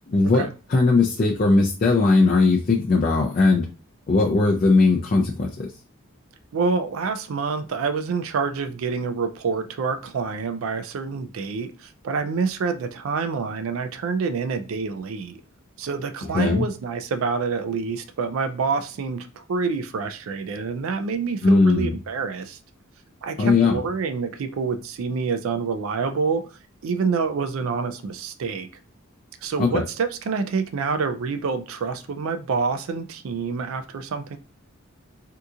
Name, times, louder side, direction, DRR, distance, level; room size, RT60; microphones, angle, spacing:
voice 1, 0.1-3.6 4.1-5.7 16.3-16.7 21.4-21.9 23.4-23.8 29.6-29.8, left 3 dB, 40° left, -1 dB, 0.4 m, -19 dB
voice 2, 6.5-15.4 15.8-22.6 23.2-26.4 26.8-28.7 29.4-34.4, right 5 dB, 70° right, 9 dB, 0.4 m, -27 dB
2.8 x 2.4 x 3.6 m, 0.34 s
head